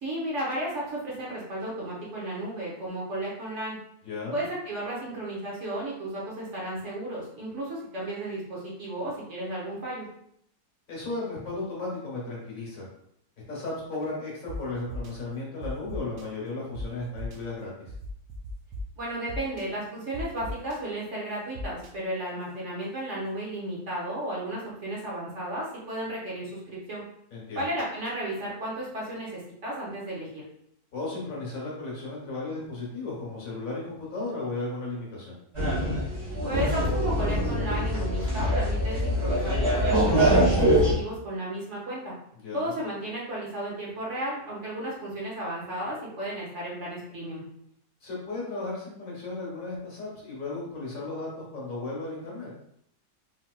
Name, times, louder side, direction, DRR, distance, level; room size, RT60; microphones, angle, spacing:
voice 1, 0.0-3.8 4.3-10.1 19.0-27.0 27.5-30.4 36.4-42.1 42.5-47.4, right 1 dB, 50° right, -5 dB, 1.1 m, -34 dB
voice 2, 4.0-4.4 10.9-12.9 13.5-17.7 27.3-27.6 30.9-35.4 42.4-42.8 48.0-52.5, left 3 dB, 60° left, -5 dB, 1.4 m, -35 dB
sound 1, 14.5-14.6 14.9-15.1 15.6-16.2 16.7-16.8 17.2-17.4 17.9-18.8 19.3-19.6 20.1-20.8 21.5-21.9, left 1 dB, 70° right, 0.9 m, -36 dB
sound 2, 35.5-40.9, equal, 20° right, 1.0 m, -24 dB
3.7 x 2.8 x 2.2 m, 0.71 s
omnidirectional pair, 1.7 m